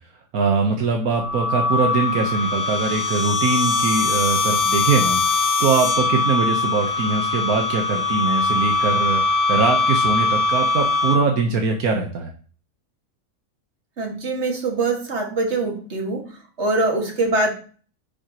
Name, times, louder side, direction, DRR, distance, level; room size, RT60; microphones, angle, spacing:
voice 1, 0.3-12.3, right 4 dB, 75° right, 3 dB, 1.5 m, -22 dB
sound 1, 1.1-11.5, left 3 dB, 45° left, 0.9 m, -21 dB
voice 2, 14.0-17.5, right 2 dB, 50° right, 1 dB, 2.3 m, -23 dB
9.8 x 7.1 x 3.0 m, 0.41 s
omnidirectional pair, 1.6 m